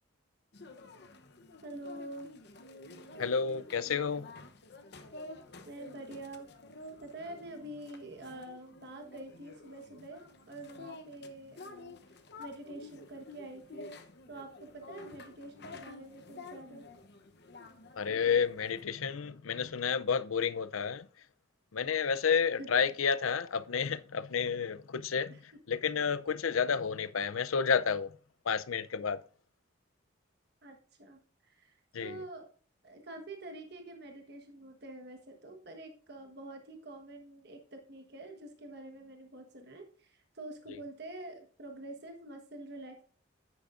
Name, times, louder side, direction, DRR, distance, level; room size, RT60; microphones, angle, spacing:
sound 1, 0.5-18.8, left 2 dB, 55° left, 0.9 m, -50 dB
voice 1, 1.6-2.3 5.6-6.5 7.0-11.9 12.4-13.9 14.3-16.8 22.6-22.7 25.3-25.4 30.6-32.5 32.8-43.0, right 1 dB, 50° right, 1.4 m, -46 dB
voice 2, 3.2-4.3 18.0-21.1 21.7-25.4 25.7-28.1 28.5-29.2 31.9-32.2, left 6 dB, 90° left, 0.6 m, -30 dB
10.5 x 9.5 x 2.6 m
head